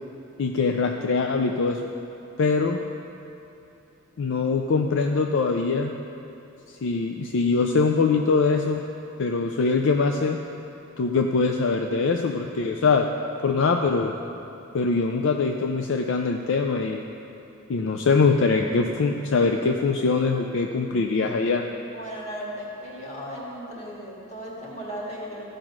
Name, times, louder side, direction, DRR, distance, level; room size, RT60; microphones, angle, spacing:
voice 1, 0.4-1.9 2.4-2.8 4.2-6.0 6.7-8.8 9.2-10.4 11.0-13.1 13.4-14.1 14.7-17.0 17.7-21.6, left 4 dB, 65° left, 3 dB, 0.4 m, -23 dB
voice 2, 21.9-25.4, equal, 35° left, -4 dB, 2.0 m, -36 dB
13.5 x 5.1 x 6.0 m, 3.0 s
head